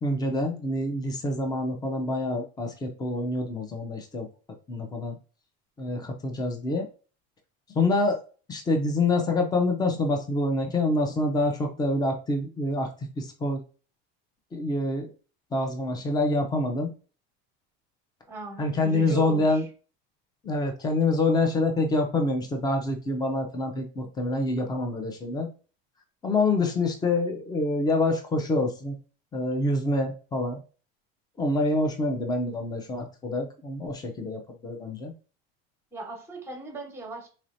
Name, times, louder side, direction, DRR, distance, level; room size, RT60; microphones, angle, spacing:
voice 1, 0.0-4.3 4.7-5.1 5.8-6.9 7.7-8.2 8.5-13.6 14.5-15.1 15.5-16.9 18.6-19.6 20.4-25.5 26.2-29.0 29.3-30.6 31.4-35.1, left 2 dB, 15° left, 4 dB, 0.6 m, -26 dB
voice 2, 18.3-19.7 35.9-37.3, right 2 dB, 10° right, 2 dB, 1.3 m, -38 dB
4.1 x 3.0 x 2.6 m, 0.35 s
cardioid pair, 145°, 29 cm